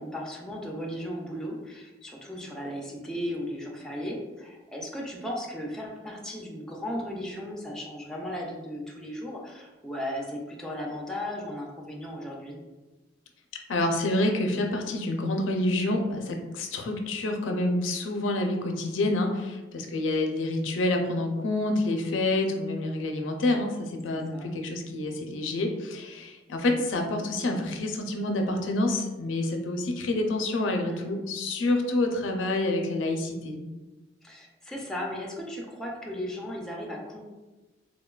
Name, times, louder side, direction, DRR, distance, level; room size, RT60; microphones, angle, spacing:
voice 1, 0.0-12.6 24.3-24.5 30.8-31.1 34.2-37.2, equal, 5° left, -2 dB, 0.4 m, -36 dB
voice 2, 13.7-33.6, left 2 dB, 90° left, 3 dB, 0.4 m, -28 dB
3.6 x 2.1 x 2.2 m, 1.1 s
head